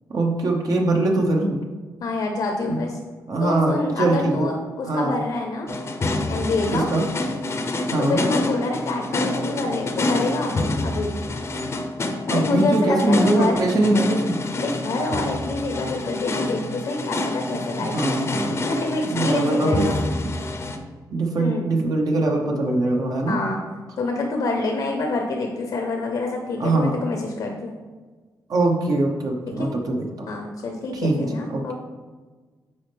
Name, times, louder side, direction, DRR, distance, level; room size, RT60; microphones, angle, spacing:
voice 1, 0.1-1.6 2.7-2.8 3.3-4.5 4.8-5.1 6.7-7.1 7.9-8.2 12.3-14.4 17.8-18.6 19.1-19.9 20.2-20.3 21.1-23.4 26.6-26.9 28.5-30.3 30.9-31.7, right 2 dB, 60° right, 1 dB, 0.8 m, -22 dB
voice 2, 2.0-2.9 3.4-5.7 6.3-6.9 8.0-11.1 12.3-13.6 14.5-18.0 18.6-20.0 21.4-21.6 23.3-23.6 24.0-27.7 29.6-29.7 30.3-31.7, left 2 dB, 75° left, 2 dB, 0.8 m, -26 dB
sound 1, 5.7-20.8, left 2 dB, 40° left, 0.6 m, -27 dB
8.5 x 4.2 x 3.4 m, 1.4 s
cardioid pair, 115°, 7 cm